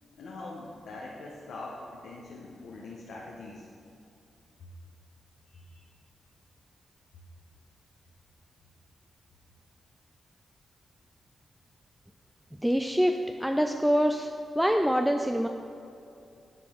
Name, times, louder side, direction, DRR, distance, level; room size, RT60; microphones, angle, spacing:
voice 1, 0.2-3.6 5.5-5.9, left 2 dB, 85° left, -3 dB, 0.7 m, -43 dB
voice 2, 12.6-14.3 14.6-15.5, equal, 5° right, 4 dB, 0.4 m, -25 dB
9.6 x 4.9 x 3.6 m, 2.6 s
supercardioid pair, 50°, 0 cm